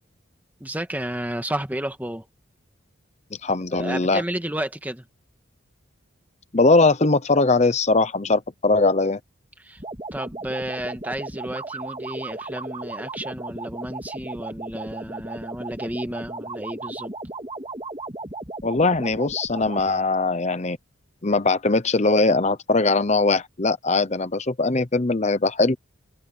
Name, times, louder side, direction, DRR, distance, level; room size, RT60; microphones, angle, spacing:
voice 1, 0.6-2.3 3.7-5.1 9.6-9.8 10.1-17.1, right 1 dB, 10° right, 1.8 m, -32 dB
voice 2, 3.4-4.2 6.5-9.2 18.6-20.8 21.2-25.8, left 3 dB, 35° left, 0.8 m, -20 dB
sound 1, 9.8-19.9, right 2 dB, 25° right, 2.8 m, -36 dB
head